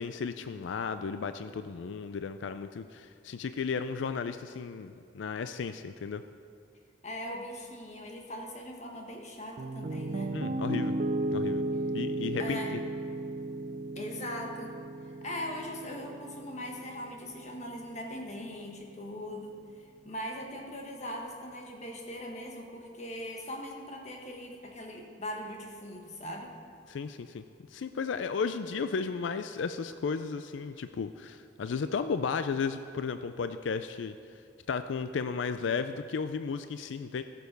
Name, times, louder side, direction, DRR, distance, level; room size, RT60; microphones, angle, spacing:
voice 1, 0.0-6.2 10.3-11.0 11.3-11.6 11.9-12.9 26.9-27.4 27.7-34.1 34.7-37.2, left 5 dB, 90° left, 10 dB, 0.4 m, -34 dB
voice 2, 7.0-10.4 12.4-12.7 13.9-14.8 15.1-26.5, left 1 dB, 40° left, 1 dB, 1.4 m, -40 dB
Piano, 9.6-17.7, right 1 dB, 50° right, 0.5 m, -35 dB
15.5 x 6.9 x 5.3 m, 2.4 s
head